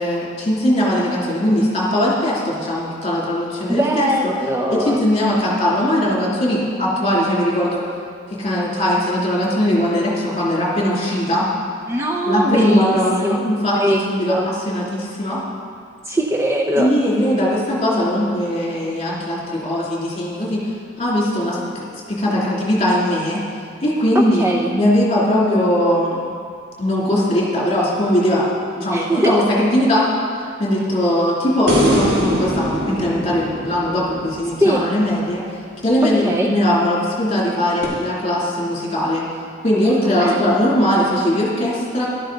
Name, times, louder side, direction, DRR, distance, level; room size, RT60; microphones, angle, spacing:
voice 1, 0.0-4.1 4.7-7.8 8.3-11.5 12.3-15.4 16.8-20.6 21.0-23.4 23.8-26.2 26.8-28.5 28.8-30.1 30.6-35.4 35.8-39.2 39.6-42.1, left 1 dB, 35° left, -5 dB, 2.9 m, -19 dB
voice 2, 3.7-5.0 11.9-13.0 13.2-13.4 13.8-14.0 14.3-14.5 16.0-16.9 24.1-24.7 28.9-29.5 34.6-34.8 36.2-36.5 40.2-40.6, equal, 15° right, 1 dB, 0.5 m, -20 dB
sound 1, 31.7-35.0 37.8-37.9, equal, 60° right, 2.7 m, -22 dB
13.5 x 11.5 x 4.0 m, 2.2 s
head